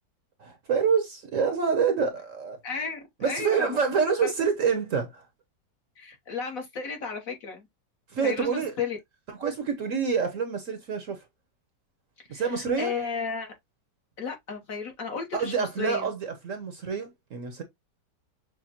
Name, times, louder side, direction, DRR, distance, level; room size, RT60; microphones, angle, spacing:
voice 1, 0.4-2.6 3.2-5.2 8.1-8.7 9.3-11.2 12.3-12.9 15.3-17.6, right 6 dB, 55° right, 1.0 m, -27 dB
voice 2, 2.6-3.8 4.2-4.3 6.0-7.7 8.2-9.0 12.3-13.5 14.2-16.1, left 5 dB, 55° left, 1.3 m, -33 dB
6.4 x 2.2 x 2.9 m
omnidirectional pair, 1.9 m